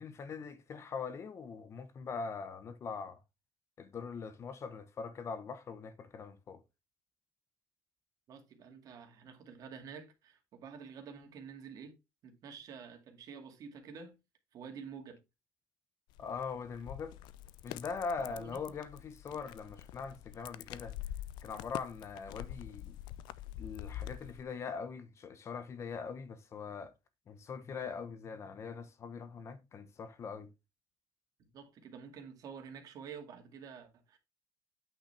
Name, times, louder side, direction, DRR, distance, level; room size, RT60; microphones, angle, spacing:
voice 1, 0.0-3.2 3.8-6.6 16.2-17.2 17.6-20.9 21.4-23.0 23.6-26.9 27.3-30.5, left 5 dB, 35° left, 1.0 m, -42 dB
voice 2, 8.3-11.9 12.2-14.2 14.5-15.2 18.2-18.8 31.4-34.2, right 6 dB, 50° right, 2.2 m, -49 dB
sound 1, 16.1-24.4, left 12 dB, 70° left, 0.5 m, -46 dB
8.8 x 5.5 x 3.4 m
cardioid pair, 125°, 8 cm